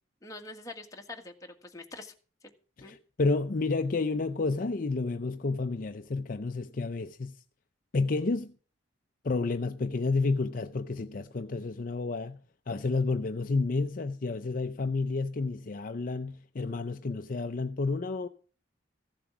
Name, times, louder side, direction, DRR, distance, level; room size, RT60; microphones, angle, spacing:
voice 1, 0.2-2.1 2.8-3.0, left 2 dB, 20° left, 1.6 m, -44 dB
voice 2, 2.8-7.4 7.9-8.5 9.2-12.4 12.7-18.3, left 3 dB, 45° left, 0.5 m, -30 dB
15.0 x 7.5 x 6.0 m
head